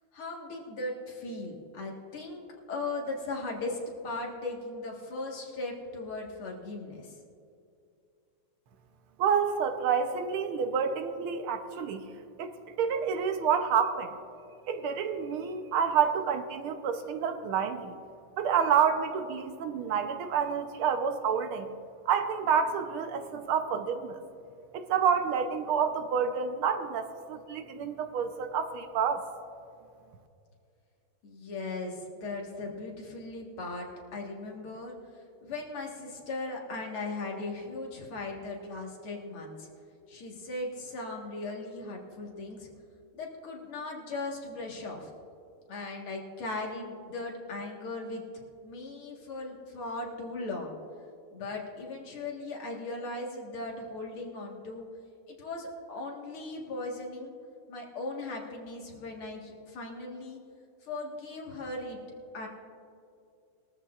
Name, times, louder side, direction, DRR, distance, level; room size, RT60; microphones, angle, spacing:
voice 1, 0.1-7.1 31.2-39.7 40.1-42.7 43.1-45.1 45.7-48.2 48.6-50.8 51.3-54.9 55.3-57.4 57.7-60.4 60.8-62.0 62.3-62.5, left 2 dB, 75° left, -1 dB, 2.6 m, -38 dB
voice 2, 9.2-12.0 12.4-14.1 14.7-17.9 18.4-21.7 22.0-24.2 24.7-29.2, right 7 dB, 75° right, 7 dB, 1.7 m, -28 dB
21.0 x 13.5 x 2.5 m, 2.5 s
omnidirectional pair, 2.4 m